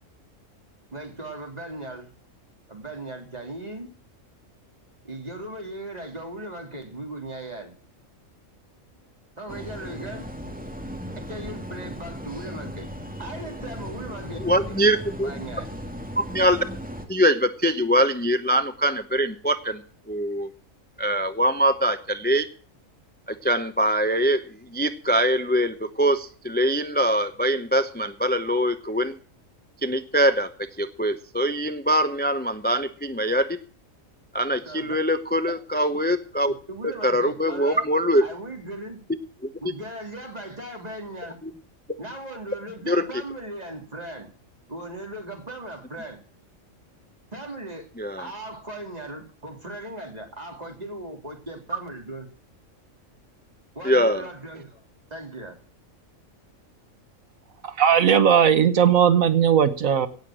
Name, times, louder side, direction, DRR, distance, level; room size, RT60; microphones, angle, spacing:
voice 1, 0.9-2.1 2.7-3.9 5.0-7.7 9.4-10.3 11.2-12.9 13.2-14.8 15.2-15.7 34.6-34.9 36.5-37.9 38.2-39.0 39.6-41.4 42.0-44.3 44.7-46.2 47.3-47.9 48.2-52.3 53.7-54.8 55.1-55.6, right 1 dB, 30° right, 3.2 m, -38 dB
sound 1, 9.5-17.0, equal, 5° right, 2.2 m, -37 dB
voice 2, 14.4-15.3 16.3-16.6 17.1-19.8 20.1-20.5 21.0-22.5 23.4-24.4 24.7-29.1 29.8-30.5 30.8-33.6 34.3-36.5 37.0-38.2 41.4-41.5 42.9-43.0 48.0-48.2 53.8-54.2, equal, 10° left, 0.6 m, -23 dB
voice 3, 57.6-60.1, right 8 dB, 80° right, 1.5 m, -18 dB
17.5 x 6.5 x 7.4 m
omnidirectional pair, 1.4 m